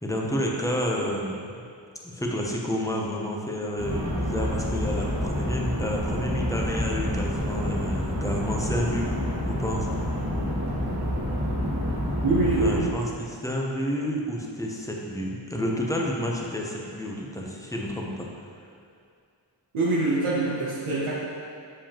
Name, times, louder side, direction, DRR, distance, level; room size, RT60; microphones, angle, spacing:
voice 1, 0.0-1.5 2.0-9.1 9.5-9.9 12.6-18.3, equal, 5° left, -1 dB, 0.7 m, -30 dB
sound 1, 3.8-12.8, equal, 35° right, 1.3 m, -28 dB
voice 2, 12.2-12.9 19.7-21.1, right 2 dB, 90° right, -7 dB, 1.0 m, -24 dB
6.9 x 4.9 x 2.9 m, 2.3 s
wide cardioid pair, 85°, 48 cm